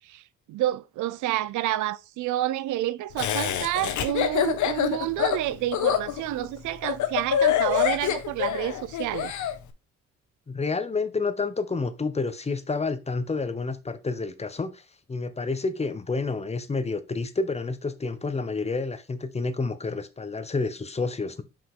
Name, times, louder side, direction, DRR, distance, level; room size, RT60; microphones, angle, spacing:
voice 1, 0.0-9.3, right 14 dB, 80° right, 0.5 m, -29 dB
Laughter, 3.2-9.5, left 10 dB, 75° left, 1.0 m, -25 dB
voice 2, 10.5-14.8 15.1-21.4, left 3 dB, 20° left, 0.8 m, -29 dB
5.7 x 5.2 x 3.7 m
cardioid pair, 90°, 30 cm